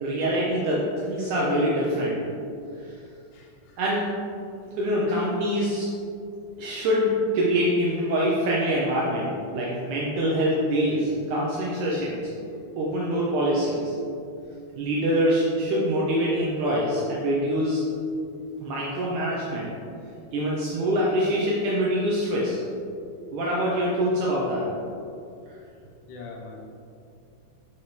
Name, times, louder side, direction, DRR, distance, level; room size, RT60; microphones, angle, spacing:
voice 1, 0.0-2.2 2.8-2.9 3.8-4.1 4.8-5.9 6.6-12.2 12.8-13.9 14.8-17.8 18.6-19.7 20.3-22.6 23.3-24.7, equal, 75° right, -5 dB, 2.2 m, -24 dB
voice 2, 3.3-3.8 26.1-26.6, left 4 dB, 75° left, -2 dB, 2.5 m, -42 dB
9.0 x 5.6 x 3.3 m, 2.5 s
omnidirectional pair, 3.7 m